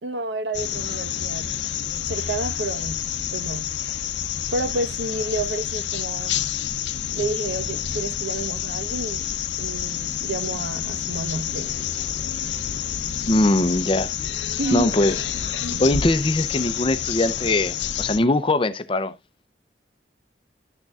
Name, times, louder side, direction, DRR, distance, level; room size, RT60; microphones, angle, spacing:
voice 1, 0.0-1.5 2.1-3.0 3.3-3.7 4.5-6.4 7.1-9.3 9.6-11.7 14.6-15.0 15.7-16.0, right 2 dB, 80° right, 1.1 m, -30 dB
sound 1, 0.5-18.2, left 9 dB, 75° left, 0.6 m, -28 dB
voice 2, 13.3-14.1 14.7-15.2 15.8-19.1, left 2 dB, 30° left, 0.6 m, -21 dB
11.5 x 6.6 x 2.3 m
head